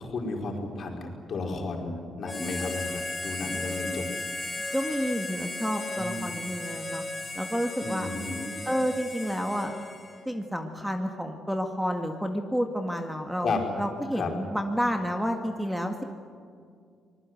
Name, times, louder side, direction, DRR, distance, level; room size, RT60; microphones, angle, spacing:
voice 1, 0.0-4.0 6.0-6.3 7.8-8.5 13.4-13.6 14.1-14.3, left 3 dB, 55° left, 0 dB, 4.9 m, -33 dB
Harmonica, 2.2-10.3, left 2 dB, 15° left, 3.9 m, -35 dB
voice 2, 4.7-7.0 7.4-8.1 8.7-9.7 10.3-16.0, equal, 5° right, 4 dB, 1.9 m, -30 dB
25.5 x 20.0 x 7.9 m, 2.2 s
cardioid pair, 90°, 0 cm